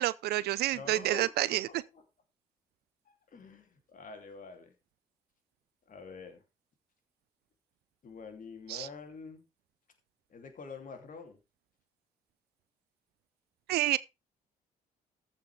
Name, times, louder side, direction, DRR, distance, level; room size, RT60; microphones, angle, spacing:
voice 1, 0.0-1.7 8.7-8.9 13.7-14.0, right 15 dB, 60° right, 0.5 m, -29 dB
voice 2, 0.7-2.0 3.1-4.7 5.9-6.4 8.0-9.4 10.3-11.4, left 5 dB, 45° left, 3.0 m, -47 dB
14.0 x 5.6 x 4.9 m
hypercardioid pair, 45°, 19 cm